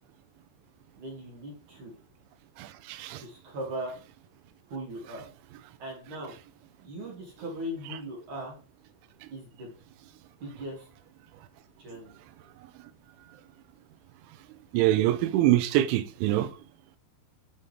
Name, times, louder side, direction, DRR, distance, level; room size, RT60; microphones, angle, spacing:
voice 1, 1.0-1.9 3.2-3.9 4.7-5.3 5.8-6.3 6.8-8.6 9.3-9.7 10.4-10.9 11.8-12.1, right 1 dB, 45° right, 3.2 m, -39 dB
voice 2, 2.6-3.2 14.7-16.5, right 14 dB, 85° right, 2.9 m, -24 dB
9.8 x 5.5 x 3.6 m
omnidirectional pair, 5.5 m